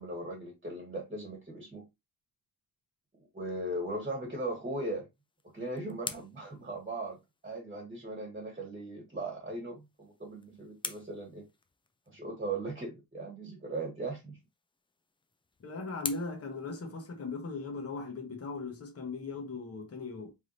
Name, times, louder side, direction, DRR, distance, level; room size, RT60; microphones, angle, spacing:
voice 1, 0.0-1.9 3.3-5.1 5.5-7.2 7.4-11.5 12.1-14.4, right 2 dB, 20° right, 1.4 m, -38 dB
sound 1, 5.1-7.6 9.7-12.2 14.4-17.5, left 3 dB, 15° left, 0.3 m, -46 dB
voice 2, 15.6-20.3, left 3 dB, 40° left, 1.0 m, -38 dB
4.6 x 3.4 x 2.6 m
wide cardioid pair, 150°, 38 cm